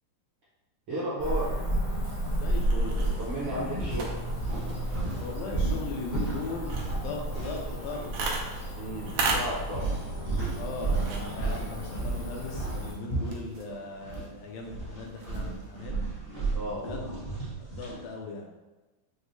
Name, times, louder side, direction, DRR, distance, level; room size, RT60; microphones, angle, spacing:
voice 1, 0.9-1.6 3.2-4.1 8.7-9.9 16.5-16.8, equal, 70° right, -9 dB, 1.3 m, -33 dB
Cricket / Motor vehicle (road), 1.2-12.9, equal, 50° left, 0.9 m, -33 dB
voice 2, 2.2-3.0 5.1-8.5 10.5-15.9 16.6-17.3 17.6-18.5, left 3 dB, 75° left, 0 dB, 1.7 m, -39 dB
sound 1, 2.4-15.8, right 3 dB, 85° right, 2.1 m, -39 dB
sound 2, 3.0-3.2 3.7-8.2 8.4-8.6 9.2-14.3 14.6-18.0, right 3 dB, 45° right, 0.6 m, -34 dB
6.3 x 2.1 x 2.7 m, 1.1 s
omnidirectional pair, 3.5 m